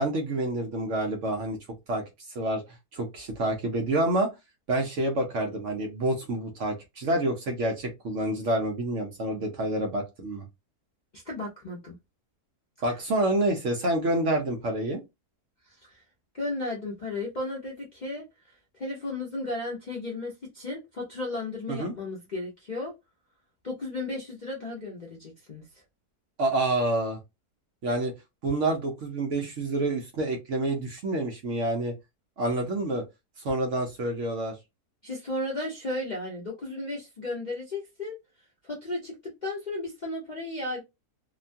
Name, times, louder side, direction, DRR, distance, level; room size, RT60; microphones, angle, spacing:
voice 1, 0.0-1.6 1.9-2.0 2.3-2.6 2.9-4.3 4.7-10.4 12.8-15.0 21.7-21.9 26.4-27.2 27.8-28.1 28.4-31.9 32.4-33.0 33.4-34.6, right 1 dB, 60° right, 0.9 m, -28 dB
voice 2, 11.1-12.0 15.7-16.0 16.3-22.9 23.6-25.8 35.0-38.2 38.6-40.8, left 2 dB, 45° left, 0.6 m, -34 dB
2.9 x 2.2 x 2.5 m
omnidirectional pair, 1.7 m